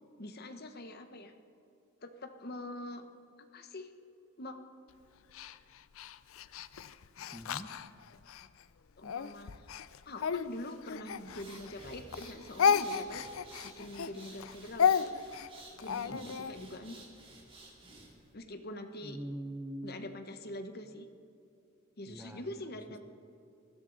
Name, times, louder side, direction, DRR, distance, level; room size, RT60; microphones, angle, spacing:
voice 1, 0.2-1.3 2.0-3.0 3.5-3.9 4.4-4.5 9.0-9.7 10.0-13.2 13.6-15.2 15.8-17.0 18.3-19.2 19.8-21.1 22.0-23.0, left 1 dB, 50° left, 7 dB, 1.0 m, -44 dB
Speech, 5.3-8.5 9.0-11.8 12.1-16.5, left 7 dB, 70° left, 0.5 m, -32 dB
voice 2, 7.3-7.7 16.1-16.3 19.0-20.0 22.1-22.4, right 1 dB, 10° right, 6 dB, 0.7 m, -42 dB
sound 1, 11.2-18.3, right 2 dB, 25° right, 2.3 m, -54 dB
20.0 x 15.0 x 4.0 m, 2.7 s
head